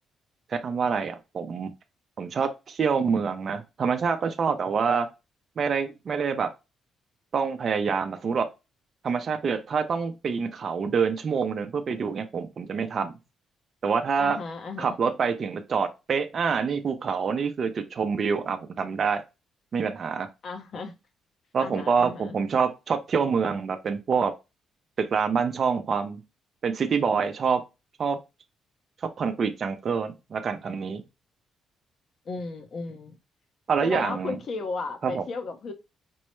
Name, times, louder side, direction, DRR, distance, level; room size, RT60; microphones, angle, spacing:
voice 1, 0.5-1.7 2.2-5.1 5.6-6.5 7.3-8.5 9.0-13.1 13.8-14.4 14.8-19.2 19.7-20.3 21.5-24.3 25.0-26.2 26.6-27.6 28.0-28.2 29.2-31.0 33.7-34.4 35.0-35.2, right 5 dB, 50° right, 0.5 m, -26 dB
voice 2, 14.2-15.0 20.4-20.9 21.6-22.4 32.3-33.2 33.8-35.7, left 3 dB, 55° left, 0.7 m, -35 dB
4.4 x 2.1 x 3.1 m
cardioid pair, 90°, 0 cm